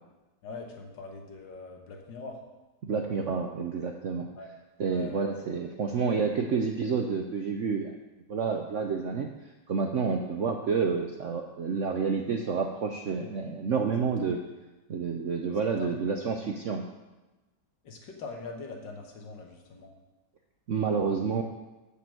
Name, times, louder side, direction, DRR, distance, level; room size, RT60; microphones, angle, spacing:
voice 1, 0.4-2.4 4.4-4.5 4.9-5.2 13.2-13.4 14.0-14.4 15.8-16.0 17.8-19.9, left 4 dB, 70° left, 2 dB, 2.0 m, -42 dB
voice 2, 2.8-4.3 4.8-7.9 8.3-9.3 9.7-14.4 14.9-16.9 20.7-21.4, right 5 dB, 65° right, 3 dB, 0.7 m, -29 dB
7.0 x 7.0 x 7.6 m, 1.1 s
omnidirectional pair, 2.1 m